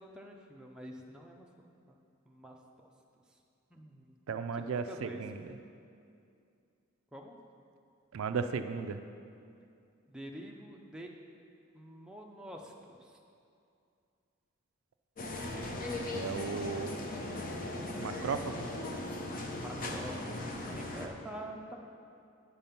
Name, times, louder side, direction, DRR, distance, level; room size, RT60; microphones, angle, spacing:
voice 1, 0.0-2.0 2.3-2.9 3.3-3.4 3.7-4.1 4.5-5.2 7.1-7.4 10.1-11.1 11.7-13.2 19.6-21.8, right 1 dB, 5° right, 0 dB, 0.5 m, -47 dB
voice 2, 4.3-5.5 8.1-9.0 16.1-16.9 18.0-18.7, right 5 dB, 75° right, 9 dB, 0.4 m, -35 dB
sound 1, 15.2-21.1, left 2 dB, 40° left, 0.7 m, -38 dB
8.5 x 5.3 x 5.7 m, 2.5 s
head